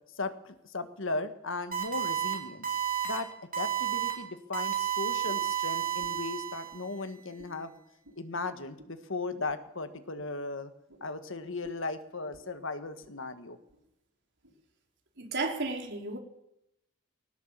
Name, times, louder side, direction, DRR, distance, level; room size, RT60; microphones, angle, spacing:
voice 1, 0.2-2.7 3.0-7.8 8.2-10.7 11.0-13.6, left 3 dB, 60° left, 10 dB, 1.6 m, -37 dB
sound 1, 1.7-2.3 2.6-3.2 3.5-4.1 4.5-6.9, right 9 dB, 40° right, 4.9 m, -31 dB
sound 2, 5.3-5.5 6.0-6.3 6.7-6.9 7.4-7.6 8.0-8.2 8.8-9.0 9.5-9.6 10.1-10.3 10.9-11.1 11.6-11.8 12.3-12.5 12.8-13.2 13.7-13.8 14.4-14.5, equal, 90° right, 7.4 m, -55 dB
voice 2, 15.2-16.2, right 3 dB, 55° right, 2 dB, 4.1 m, -33 dB
21.0 x 18.5 x 7.5 m, 0.83 s
head